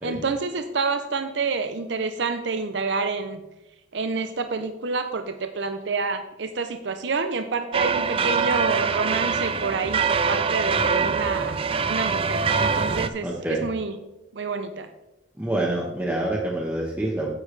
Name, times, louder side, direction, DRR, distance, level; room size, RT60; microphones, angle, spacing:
voice 1, 0.0-3.4 3.9-11.6 11.8-13.9 14.3-14.9, right 4 dB, 65° right, 7 dB, 0.6 m, -28 dB
sound 1, 7.7-13.1, right 5 dB, 30° right, 0.4 m, -24 dB
voice 2, 13.2-13.6 15.4-17.3, right 1 dB, 10° right, -4 dB, 1.0 m, -27 dB
9.8 x 8.5 x 3.2 m, 0.96 s
head